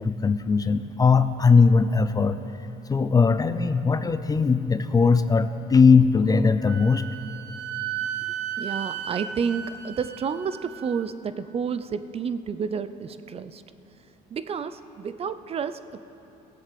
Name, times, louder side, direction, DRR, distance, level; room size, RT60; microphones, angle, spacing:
voice 1, 0.0-2.4 2.9-7.0, left 5 dB, 20° left, 11 dB, 0.5 m, -19 dB
Wind instrument woodwind instrument, 6.6-11.1, right 10 dB, 80° right, 0.8 m, -34 dB
voice 2, 8.6-13.6 14.3-16.1, right 6 dB, 35° right, 13 dB, 0.5 m, -30 dB
17.0 x 7.9 x 7.6 m, 2.9 s
cardioid pair, 110°, 17 cm